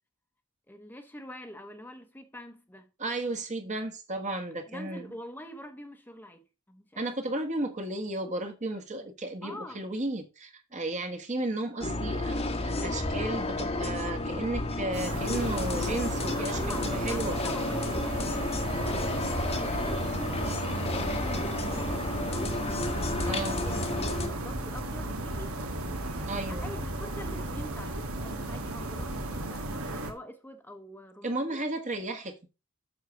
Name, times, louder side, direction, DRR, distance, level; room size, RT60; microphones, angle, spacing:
voice 1, 0.7-2.9 4.7-7.1 9.4-9.8 16.2-19.3 19.6-22.6 23.0-25.7 26.5-31.6, left 1 dB, 10° left, 1.0 m, -45 dB
voice 2, 3.0-5.1 7.0-17.4 23.2-23.6 26.3-26.6 31.2-32.5, right 2 dB, 35° right, 1.5 m, -34 dB
sound 1, 11.8-24.3, left 2 dB, 30° left, 1.2 m, -31 dB
sound 2, 14.9-30.1, right 2 dB, 80° right, 1.8 m, -36 dB
sound 3, 22.7-29.4, equal, 10° right, 1.5 m, -41 dB
7.5 x 6.5 x 5.1 m
head